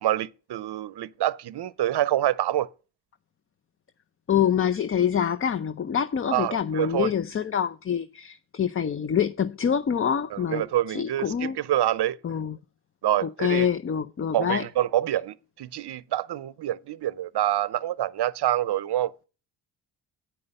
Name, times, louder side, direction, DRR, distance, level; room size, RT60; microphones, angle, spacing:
voice 1, 0.0-2.7 6.3-7.1 10.3-12.2 13.0-13.7 14.3-19.1, right 13 dB, 55° right, 0.7 m, -26 dB
voice 2, 4.3-11.6 12.2-12.6 13.2-14.6, left 8 dB, 30° left, 0.5 m, -26 dB
8.9 x 5.6 x 6.4 m
supercardioid pair, 60°, 49 cm